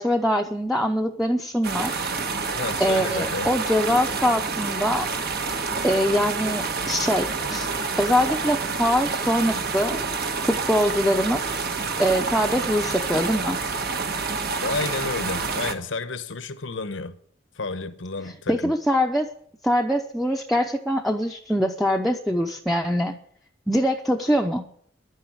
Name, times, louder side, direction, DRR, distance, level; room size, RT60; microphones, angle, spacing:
voice 1, 0.0-2.1 2.8-5.1 5.8-7.7 8.0-10.0 10.5-11.4 12.0-13.6 18.5-19.3 19.6-23.2 23.7-24.7, equal, ahead, 0.7 m, -23 dB
sound 1, 1.6-15.7, right 4 dB, 55° right, 1.4 m, -28 dB
voice 2, 2.6-3.5 14.6-17.1 17.6-18.7, left 3 dB, 80° left, 1.1 m, -31 dB
11.5 x 9.1 x 9.9 m
head